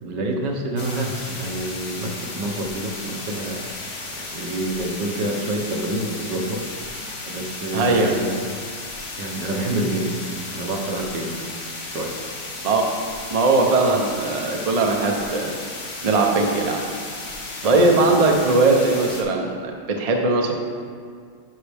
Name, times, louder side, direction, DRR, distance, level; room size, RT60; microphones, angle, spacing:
voice 1, 0.0-3.6 4.1-8.8 9.2-10.2 10.5-11.4 11.8-12.2 17.6-17.9, right 1 dB, 80° right, 1 dB, 1.6 m, -28 dB
sound 1, 0.8-19.2, left 2 dB, 45° left, 1.3 m, -34 dB
voice 2, 7.7-8.1 12.6-12.8 13.3-15.6 16.0-16.8 17.6-20.5, right 3 dB, 50° right, 1 dB, 0.4 m, -19 dB
10.5 x 5.4 x 3.5 m, 2.2 s
omnidirectional pair, 1.9 m